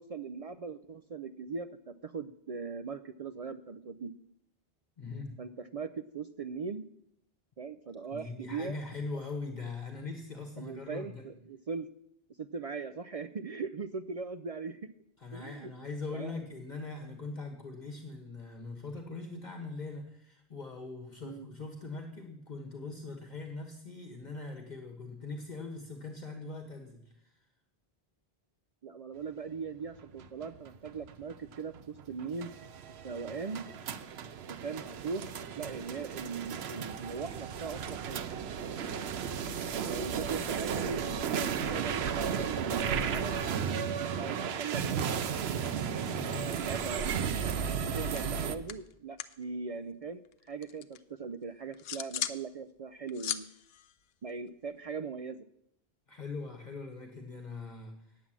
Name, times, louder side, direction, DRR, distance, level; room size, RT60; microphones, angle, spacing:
voice 1, 0.0-4.1 5.4-6.9 7.6-8.8 10.6-11.9 12.4-14.8 15.3-15.7 16.1-16.4 21.2-21.5 28.8-32.5 33.0-33.6 34.5-38.3 39.9-43.4 44.0-45.0 46.5-47.1 47.6-50.2 50.5-53.5 54.2-55.5, right 5 dB, 55° right, 10 dB, 0.4 m, -40 dB
voice 2, 5.0-5.4 8.1-11.3 15.2-27.4 46.1-46.5 56.1-58.2, left 3 dB, 45° left, 3 dB, 1.4 m, -41 dB
sound 1, 29.9-48.6, right 7 dB, 90° right, 0.9 m, -34 dB
Gun Sounds, 45.6-46.9 47.1-49.4 49.7-51.0 51.4-52.4 52.8-54.9, left 10 dB, 75° left, 0.8 m, -40 dB
9.4 x 8.3 x 7.4 m, 0.76 s
omnidirectional pair, 1.0 m